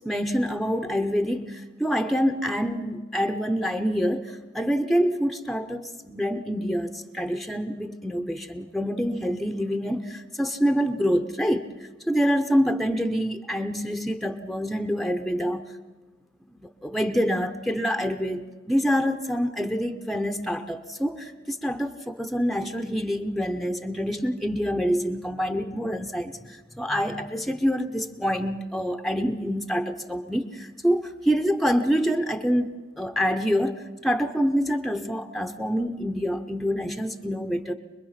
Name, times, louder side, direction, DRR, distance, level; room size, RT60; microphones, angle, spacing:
voice 1, 0.0-15.7 16.5-37.7, equal, ahead, 7 dB, 0.8 m, -26 dB
25.0 x 21.5 x 5.8 m, 1.3 s
head